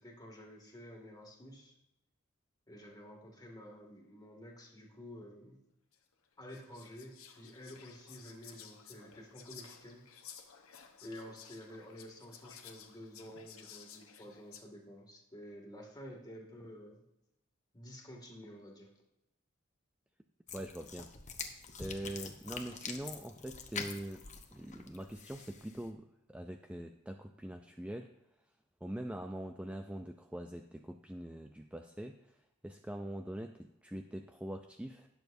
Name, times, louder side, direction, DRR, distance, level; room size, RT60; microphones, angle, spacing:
voice 1, 0.0-1.8 2.7-5.6 6.4-10.1 11.0-17.0 17.7-19.0, equal, 20° left, 0 dB, 2.1 m, -51 dB
Whispering, 5.9-6.0 6.5-14.6, left 8 dB, 70° left, 1.1 m, -55 dB
sound 1, 20.5-25.9, left 5 dB, 35° left, 1.0 m, -45 dB
voice 2, 20.5-21.1 21.8-28.1 28.8-35.1, right 1 dB, 5° right, 6 dB, 0.4 m, -43 dB
19.0 x 6.9 x 2.6 m, 0.87 s
head